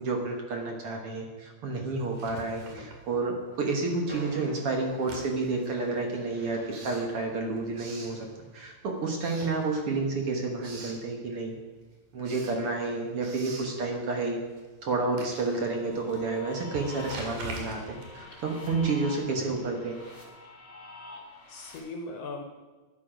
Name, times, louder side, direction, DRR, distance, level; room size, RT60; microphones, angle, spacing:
voice 1, 0.0-8.3 8.5-11.6 12.1-14.4 14.8-20.0, right 3 dB, 55° right, 2 dB, 2.1 m, -30 dB
Writing, 2.1-3.6 3.9-8.7 9.1-10.1 10.4-11.1 11.5-19.2, right 3 dB, 80° right, 3.4 m, -45 dB
voice 2, 2.6-2.9 19.3-19.5 21.5-22.4, left 3 dB, 65° left, 3 dB, 1.8 m, -40 dB
Train, 3.4-8.7, equal, 5° right, 2.5 m, -50 dB
sound 1, 15.6-21.8, left 3 dB, 25° left, 3.0 m, -47 dB
12.5 x 10.0 x 5.1 m, 1.3 s
omnidirectional pair, 3.5 m